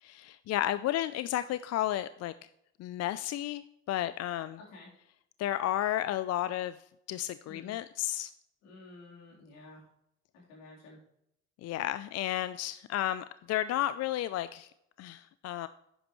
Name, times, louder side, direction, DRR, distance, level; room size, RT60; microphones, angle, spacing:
voice 1, 0.0-2.3 2.8-4.6 5.4-6.8 7.1-8.3 11.6-14.7 15.0-15.7, left 13 dB, 50° left, 14 dB, 0.4 m, -32 dB
voice 2, 4.4-4.9 7.4-7.8 8.6-9.9 10.3-11.0, left 2 dB, 80° left, -4 dB, 3.7 m, -52 dB
11.0 x 8.9 x 3.1 m, 0.78 s
hypercardioid pair, 60°, 33 cm